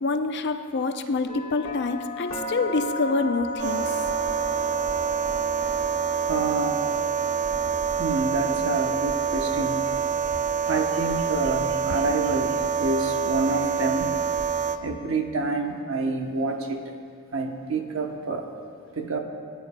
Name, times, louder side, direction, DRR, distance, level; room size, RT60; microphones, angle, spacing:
voice 1, 0.0-3.9, left 3 dB, 50° left, 8 dB, 0.5 m, -26 dB
sound 1, 1.3-15.2, left 1 dB, 80° left, 1.3 m, -38 dB
sound 2, 3.6-14.8, right 7 dB, 35° right, 0.3 m, -26 dB
voice 2, 6.3-6.8 8.0-9.9 10.7-14.1 14.8-17.0 17.3-18.5 18.9-19.2, right 3 dB, 60° right, 3 dB, 0.9 m, -27 dB
18.5 x 10.5 x 2.2 m, 2.2 s
head